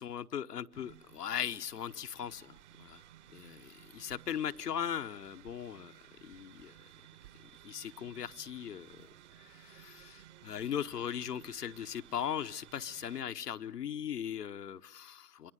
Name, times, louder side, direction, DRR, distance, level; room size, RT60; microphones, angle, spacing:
voice 1, 0.0-3.0 3.3-5.9 6.2-6.7 7.6-9.1 9.4-15.5, left 9 dB, 80° left, 10 dB, 1.0 m, -39 dB
sound 1, 0.7-13.2, right 12 dB, 45° right, 1.6 m, -57 dB
27.0 x 23.5 x 7.8 m, 0.69 s
hypercardioid pair, 130°, 47 cm